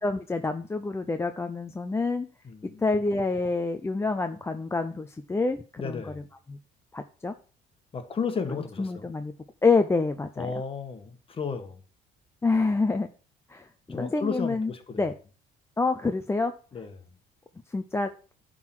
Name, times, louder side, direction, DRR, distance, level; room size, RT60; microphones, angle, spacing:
voice 1, 0.0-2.3 2.8-6.2 6.5-6.6 6.9-7.3 8.8-9.3 9.6-10.5 12.4-13.1 13.5-14.7 15.0-15.1 15.8-16.5 17.7-18.1, left 3 dB, 15° left, 0.6 m, -27 dB
voice 2, 2.4-2.9 5.8-6.2 7.9-9.1 10.4-11.8 13.9-15.0 16.7-16.9, left 5 dB, 35° left, 1.5 m, -33 dB
10.5 x 3.9 x 6.0 m
cardioid pair, 110°, 17 cm